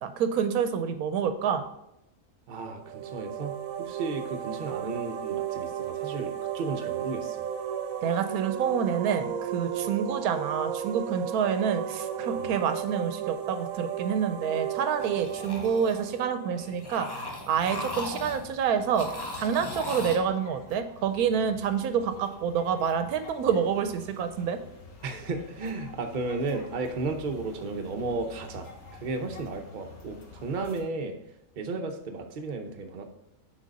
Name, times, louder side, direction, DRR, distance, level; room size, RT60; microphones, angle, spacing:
voice 1, 0.0-1.7 8.0-19.1 19.4-24.6, right 7 dB, 90° right, 9 dB, 1.1 m, -28 dB
voice 2, 2.5-3.5 3.8-7.5 12.3-12.5 25.0-31.2 31.6-33.0, right 3 dB, 45° right, 4 dB, 0.7 m, -34 dB
sound 1, 2.8-17.5, right 9 dB, 75° right, 1.0 m, -34 dB
sound 2, 15.0-16.2 16.6-18.6 18.9-20.2, left 2 dB, 20° left, 0.6 m, -38 dB
sound 3, 17.7-30.8, left 4 dB, 65° left, 1.5 m, -49 dB
6.4 x 4.0 x 5.2 m, 0.81 s
omnidirectional pair, 1.5 m